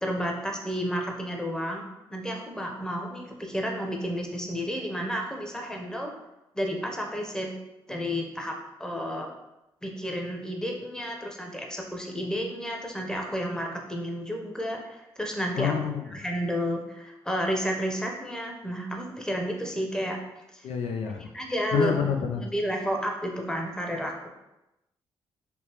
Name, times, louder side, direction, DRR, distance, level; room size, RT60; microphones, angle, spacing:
voice 1, 0.0-6.1 6.5-7.5 7.9-9.3 9.8-15.8 16.1-20.2 20.5-20.7 21.3-22.0 22.4-24.3, equal, 5° left, 1 dB, 0.8 m, -31 dB
voice 2, 15.6-16.1 20.6-21.3 21.7-22.4, left 7 dB, 70° left, 3 dB, 0.4 m, -27 dB
3.5 x 2.7 x 2.9 m, 0.93 s
supercardioid pair, 50°, 11 cm